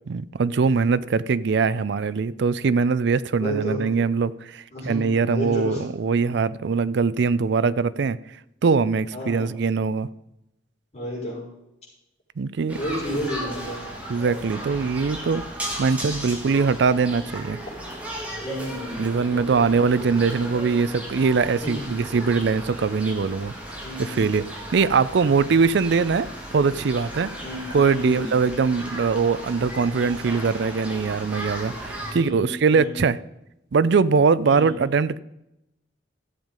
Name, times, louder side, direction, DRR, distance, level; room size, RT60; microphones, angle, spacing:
voice 1, 0.1-8.2 8.6-10.1 12.4-12.8 14.1-15.4 15.8-17.6 19.0-23.5 24.0-24.4 24.7-26.3 26.5-27.3 27.7-33.2 33.7-35.2, right 5 dB, 65° right, 0.4 m, -22 dB
voice 2, 3.4-3.8 4.7-5.8 9.1-9.5 10.9-11.4 12.7-13.8 18.4-19.7 21.6-21.9 23.8-24.2 27.4-28.3 32.1-32.9 34.4-34.7, equal, 35° left, 5.3 m, -31 dB
sound 1, 12.7-32.1, right 1 dB, 5° right, 2.3 m, -36 dB
13.5 x 7.3 x 5.3 m
head